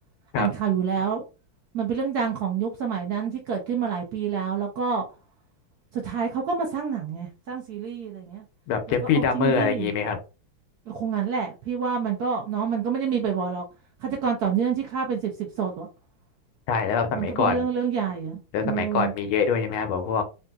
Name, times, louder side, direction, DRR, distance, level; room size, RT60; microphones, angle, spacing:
voice 1, 0.3-1.2 1.7-5.0 5.9-8.4 8.9-9.9 10.9-13.7 14.0-15.9 17.1-18.4 18.6-19.1, right 7 dB, 70° right, 1 dB, 0.9 m, -27 dB
voice 2, 8.7-10.2 16.7-17.7 18.5-20.2, left 6 dB, 85° left, 7 dB, 1.5 m, -24 dB
3.7 x 2.6 x 2.3 m, 0.31 s
omnidirectional pair, 2.2 m